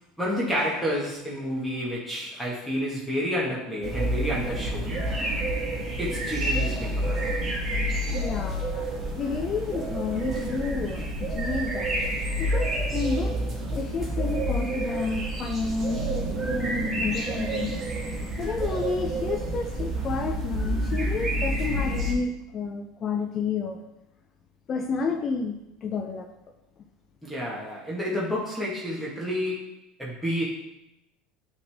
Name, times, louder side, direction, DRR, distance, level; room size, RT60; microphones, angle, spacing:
voice 1, 0.2-5.0 6.0-7.2 27.2-29.7 30.0-30.4, equal, ahead, -6 dB, 1.7 m, -30 dB
sound 1, 3.8-22.1, right 1 dB, 30° right, 1.6 m, -29 dB
voice 2, 8.1-8.9 9.2-13.3 13.7-17.7 18.4-23.8 24.7-26.3, left 5 dB, 40° left, 4 dB, 0.6 m, -30 dB
9.1 x 3.6 x 3.5 m, 0.87 s
hypercardioid pair, 80°, 0 cm